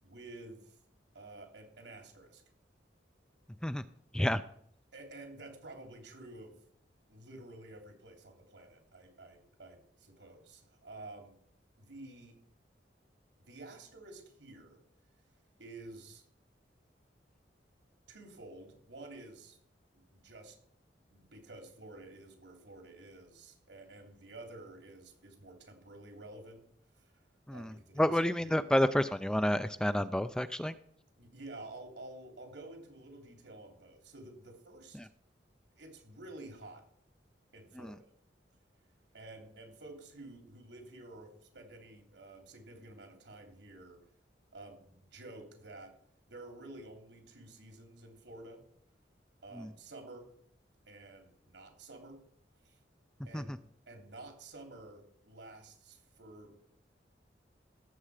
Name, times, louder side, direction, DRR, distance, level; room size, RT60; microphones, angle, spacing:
voice 1, 0.0-0.8 1.1-2.4 4.9-6.6 7.1-11.4 11.8-12.4 13.4-14.8 15.6-16.2 18.1-19.6 19.9-20.6 21.1-26.7 26.9-27.1 27.5-28.7 31.2-35.0 35.8-36.9 37.5-38.1 39.1-44.1 44.5-46.0 46.3-48.6 49.4-50.3 50.9-52.2 52.6-52.8 53.2-53.6 53.9-56.5, right 2 dB, 85° right, 3 dB, 3.3 m, -51 dB
voice 2, 27.5-30.7 37.8-37.9 49.6-49.7 53.3-53.6, left 1 dB, 5° left, 12 dB, 0.4 m, -30 dB
16.5 x 7.7 x 4.9 m, 0.64 s
head